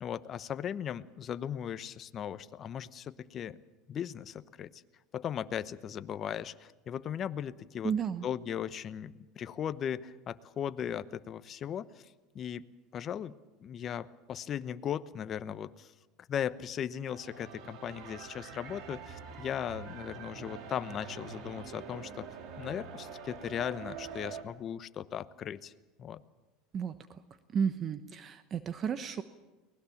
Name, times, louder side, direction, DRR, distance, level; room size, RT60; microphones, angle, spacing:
voice 1, 0.0-3.6 3.9-4.8 5.1-7.9 8.2-12.7 12.9-15.9 16.3-22.3 22.6-25.7 26.0-26.2, left 9 dB, 40° left, 13 dB, 1.0 m, -37 dB
voice 2, 7.8-8.3 26.7-27.2 27.5-29.2, right 7 dB, 35° right, 11 dB, 1.0 m, -33 dB
sound 1, 17.1-24.4, right 6 dB, 60° right, 3.1 m, -45 dB
23.5 x 19.5 x 7.3 m, 1.2 s
supercardioid pair, 115°, 0 cm